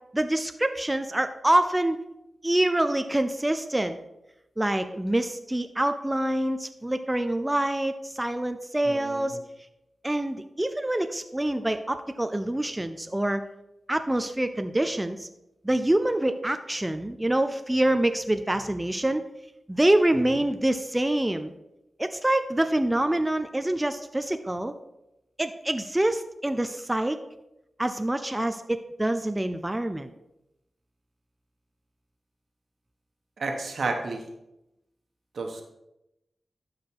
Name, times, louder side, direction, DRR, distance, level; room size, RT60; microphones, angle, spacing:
voice 1, 0.1-2.0 2.4-4.0 4.6-9.4 10.0-13.4 13.9-15.3 15.6-19.2 19.7-21.5 22.0-24.7 25.4-27.2 27.8-30.1, right 1 dB, 15° right, 8 dB, 0.5 m, -26 dB
voice 2, 8.8-9.4 20.1-20.4 33.4-34.2 35.3-35.6, right 3 dB, 75° right, 3 dB, 1.4 m, -32 dB
12.0 x 4.8 x 4.7 m, 0.89 s
cardioid pair, 60°, 0 cm